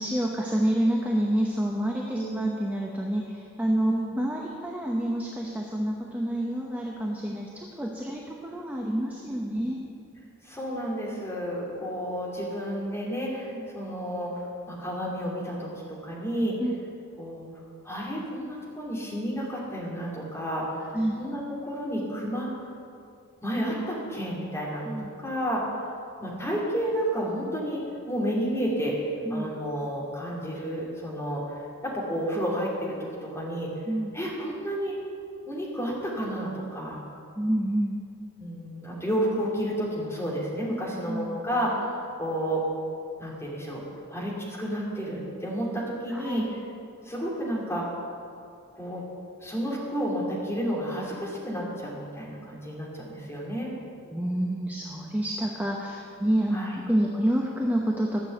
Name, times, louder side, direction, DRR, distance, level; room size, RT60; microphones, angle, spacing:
voice 1, 0.0-9.8 13.5-13.7 16.6-16.7 20.9-21.2 24.8-25.1 29.3-29.5 33.9-34.1 37.4-38.0 41.1-41.4 46.1-46.5 54.1-58.3, right 1 dB, 5° right, -2 dB, 0.8 m, -28 dB
voice 2, 2.1-2.5 3.8-4.1 10.4-14.3 14.7-16.5 17.2-17.5 17.8-22.5 23.4-25.6 26.2-29.0 29.3-33.7 34.1-34.9 35.5-37.0 38.4-42.6 43.2-43.8 44.1-46.4 47.0-47.9 48.7-49.0 49.4-53.7 56.5-56.8, equal, 10° left, -5 dB, 2.5 m, -31 dB
12.5 x 6.9 x 7.8 m, 2.5 s
head